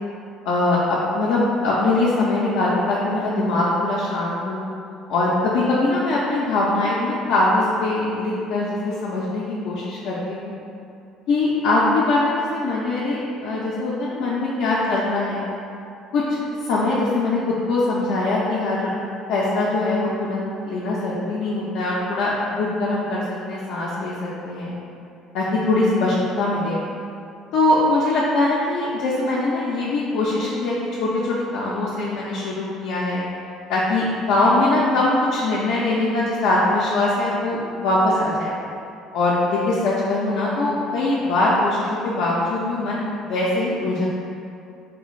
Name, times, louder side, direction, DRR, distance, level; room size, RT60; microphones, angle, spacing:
voice 1, 0.4-4.6 5.1-10.5 11.3-15.5 16.1-16.2 16.6-18.9 19.3-24.1 24.4-24.7 25.3-26.8 27.5-33.2 33.7-38.6 39.1-44.1, left 2 dB, 65° left, -6 dB, 0.4 m, -22 dB
3.3 x 2.4 x 3.1 m, 2.6 s
hypercardioid pair, 60°, 0 cm